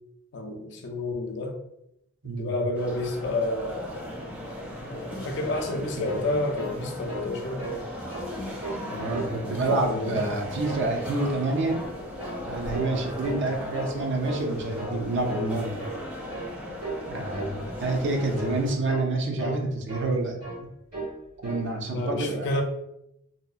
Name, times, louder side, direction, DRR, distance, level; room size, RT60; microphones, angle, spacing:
voice 1, 0.3-1.6 2.4-4.1 4.8-7.7 8.9-10.2 21.9-22.6, left 2 dB, 55° left, 4 dB, 0.4 m, -30 dB
voice 2, 2.2-2.5 8.7-11.8 12.3-15.8 17.1-20.4 21.4-22.6, right 2 dB, 55° right, 2 dB, 0.5 m, -28 dB
sound 1, 2.8-18.7, left 1 dB, 5° right, 0.5 m, -37 dB
sound 2, 5.5-6.8 7.1-7.3 7.6-8.3 8.6-9.4 9.6-10.4 10.6-10.9 11.2-11.9 12.2-12.4 12.7-13.0 13.2-14.0 14.2-14.5 14.8-15.0 15.3-15.5 15.8-16.0 16.3-16.5 16.8-17.1 17.3-17.6 17.8-18.1 18.3-18.6 18.9-19.1 19.4-20.1 20.4-20.6 20.9-21.2 21.4-21.7, right 1 dB, 85° right, 1.4 m, -35 dB
2.7 x 2.0 x 2.4 m, 0.81 s
head